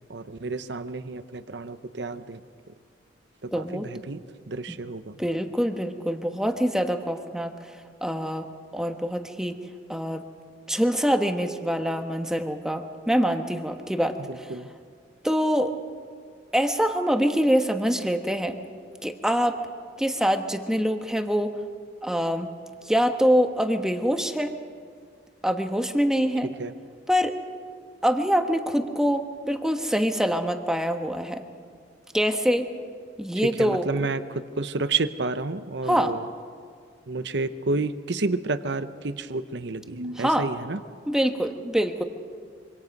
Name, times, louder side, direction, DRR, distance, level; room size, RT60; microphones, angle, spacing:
voice 1, 0.1-2.4 2.7-2.8 3.4-5.2 14.2-14.7 26.4-26.7 33.4-36.3 37.1-40.8, right 3 dB, 65° right, 12 dB, 0.8 m, -30 dB
voice 2, 3.5-3.9 5.2-7.7 8.0-8.5 8.7-9.6 9.9-10.2 10.7-14.2 15.2-15.7 16.5-18.6 19.0-19.6 20.0-21.6 22.0-22.5 22.9-24.5 25.4-26.5 27.1-27.4 28.0-31.4 32.1-32.7 33.2-33.9 35.9-36.2 40.2-40.4 41.1-42.0, equal, 5° right, 6 dB, 1.2 m, -24 dB
25.5 x 25.0 x 5.3 m, 2.1 s
head